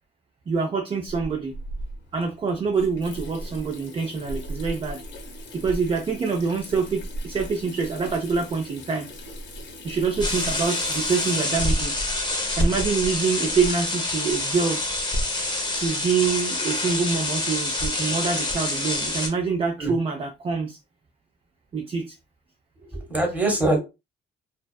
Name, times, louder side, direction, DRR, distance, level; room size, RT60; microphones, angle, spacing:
voice 1, 0.5-1.5 2.1-5.0 5.5-9.1 9.8-11.9 12.5-14.8 15.8-20.8 21.7-22.1, right 5 dB, 30° right, 0.4 m, -26 dB
Water tap faucet / Sink (filling or washing), 1.1-13.7, right 1 dB, 65° left, 0.8 m, -37 dB
sound 1, 10.2-19.3, left 1 dB, 20° left, 0.7 m, -26 dB
voice 2, 22.8-23.8, right 2 dB, 5° right, 1.0 m, -23 dB
2.3 x 2.3 x 2.2 m
cardioid pair, 90°, 20 cm